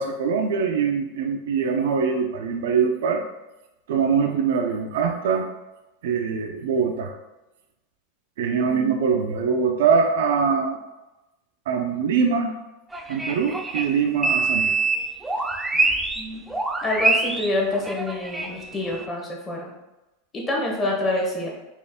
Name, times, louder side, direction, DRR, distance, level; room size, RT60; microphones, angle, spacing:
voice 1, 0.0-3.2 3.9-5.5 6.0-7.1 8.4-10.8 11.7-12.5 13.1-14.7, right 6 dB, 75° right, 4 dB, 0.5 m, -23 dB
voice 2, 8.7-9.0 16.1-16.5 16.8-19.7 20.3-21.5, left 1 dB, 25° left, -1 dB, 1.2 m, -27 dB
sound 1, 12.9-16.2 16.5-19.1, right 3 dB, 10° right, 0.4 m, -25 dB
4.3 x 2.5 x 3.6 m, 1.0 s
hypercardioid pair, 115°, 0 cm